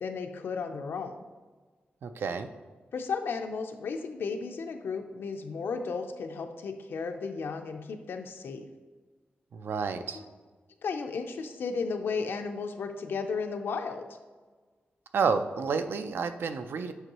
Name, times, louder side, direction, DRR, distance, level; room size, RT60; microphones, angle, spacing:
voice 1, 0.0-1.2 2.9-8.7 10.1-10.2 10.8-14.0, left 5 dB, 85° left, 5 dB, 0.5 m, -34 dB
voice 2, 2.0-2.5 9.5-10.2 15.1-16.9, right 5 dB, 80° right, 9 dB, 0.4 m, -30 dB
7.9 x 5.3 x 2.9 m, 1.4 s
wide cardioid pair, 150°, 4 cm